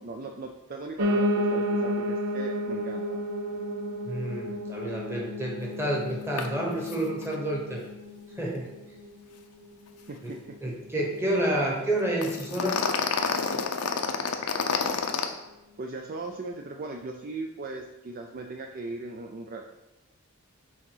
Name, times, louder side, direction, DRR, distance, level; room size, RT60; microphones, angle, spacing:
voice 1, 0.0-3.2 10.1-10.7 15.8-19.7, right 3 dB, 40° right, 3 dB, 0.4 m, -38 dB
Piano, 1.0-10.1 10.5-11.7 11.9-12.0 12.3-12.4 12.6-12.7 13.2-13.3, equal, 80° right, 0.7 m, -32 dB
voice 2, 4.1-7.8 8.4-8.7 10.2-10.3 10.6-12.9, right 1 dB, 10° right, -2 dB, 1.2 m, -29 dB
sound 1, 6.4-6.5 6.8-7.0 7.2-7.3 12.2-15.3, left 5 dB, 85° left, 0.6 m, -28 dB
6.3 x 3.9 x 5.4 m, 0.99 s
head